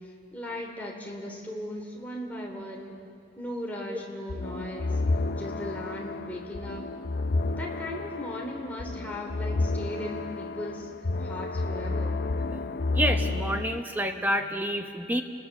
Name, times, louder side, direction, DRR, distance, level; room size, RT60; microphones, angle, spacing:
voice 1, 0.0-3.0 3.4-5.0 5.3-6.8 7.5-10.9 11.2-12.2, left 1 dB, 10° left, -2 dB, 3.4 m, -37 dB
sound 1, 4.3-13.8, left 3 dB, 50° left, 0.6 m, -30 dB
voice 2, 12.9-15.2, equal, 10° right, 5 dB, 1.0 m, -29 dB
29.0 x 20.0 x 7.2 m, 2.5 s
head